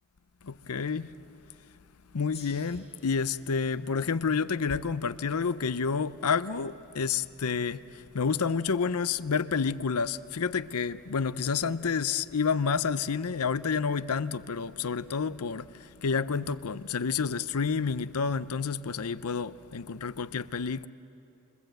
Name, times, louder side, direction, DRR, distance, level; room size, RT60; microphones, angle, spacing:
voice 1, 0.4-1.2 2.1-20.9, left 5 dB, 85° left, 0.7 m, -29 dB
Gong, 2.3-7.0, left 6 dB, 30° left, 2.1 m, -56 dB
29.5 x 25.5 x 8.0 m
head